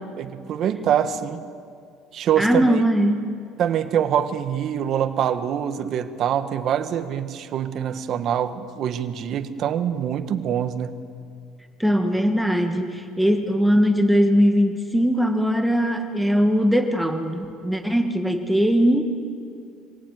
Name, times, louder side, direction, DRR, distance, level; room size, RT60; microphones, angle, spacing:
voice 1, 0.2-1.4 2.1-2.8 3.6-11.0, right 9 dB, 50° right, 9 dB, 1.5 m, -24 dB
voice 2, 2.4-3.2 11.8-19.0, equal, ahead, 4 dB, 1.6 m, -20 dB
25.5 x 17.5 x 9.5 m, 2.3 s
cardioid pair, 120°, 0 cm